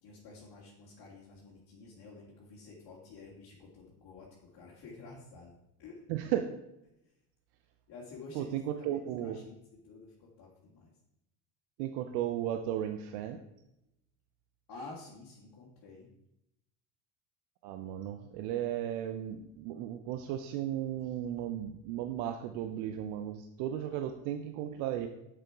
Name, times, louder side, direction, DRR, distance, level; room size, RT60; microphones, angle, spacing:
voice 1, 0.0-5.5 5.8-6.0 7.9-9.6 9.8-10.9 14.7-16.1, left 3 dB, 50° left, -5 dB, 2.3 m, -50 dB
voice 2, 6.1-6.5 8.3-9.4 11.8-13.4 17.6-25.1, right 11 dB, 70° right, 7 dB, 0.8 m, -35 dB
7.2 x 6.8 x 4.7 m, 0.85 s
supercardioid pair, 85°, 48 cm